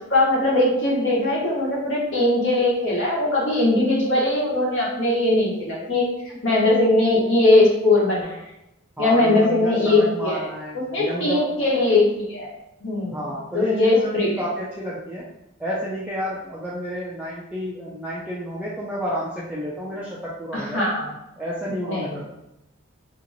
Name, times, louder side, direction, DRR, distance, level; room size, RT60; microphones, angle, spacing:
voice 1, 0.0-8.4 9.0-10.4 10.9-12.5 12.8-13.2 13.5-14.3 20.5-21.1 21.8-22.2, left 2 dB, 60° left, -5 dB, 1.2 m, -20 dB
voice 2, 9.0-11.4 13.1-15.3 15.6-20.9 21.4-22.2, equal, 5° right, -7 dB, 0.4 m, -30 dB
2.8 x 2.5 x 3.9 m, 0.90 s
head